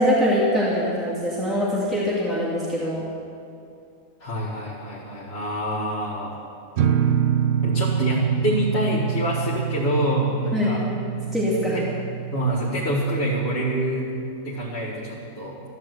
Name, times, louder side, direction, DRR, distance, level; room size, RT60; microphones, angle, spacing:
voice 1, 0.0-3.1 10.5-10.8 11.3-11.8, equal, ahead, -8 dB, 2.7 m, -23 dB
voice 2, 4.2-6.4 7.6-10.8 11.7-11.9 12.3-14.1 14.4-15.6, right 1 dB, 40° left, -5 dB, 2.1 m, -26 dB
sound 1, 6.8-14.3, right 8 dB, 65° right, 0.9 m, -26 dB
14.0 x 11.0 x 8.1 m, 2.6 s
omnidirectional pair, 1.6 m